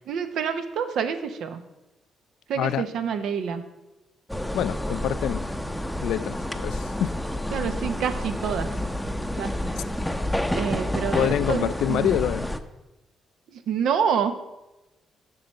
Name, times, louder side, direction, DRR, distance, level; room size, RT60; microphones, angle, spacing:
voice 1, 0.1-1.6 2.5-3.6 7.5-8.8 9.4-9.7 10.5-12.2 13.5-14.3, right 7 dB, 75° right, 0.9 m, -27 dB
sound 1, 4.3-12.6, left 1 dB, 5° left, 0.6 m, -29 dB
voice 2, 4.5-5.5 6.0-7.1 11.1-12.5, left 11 dB, 80° left, 0.4 m, -26 dB
7.7 x 5.7 x 6.4 m
cardioid pair, 90°, 0 cm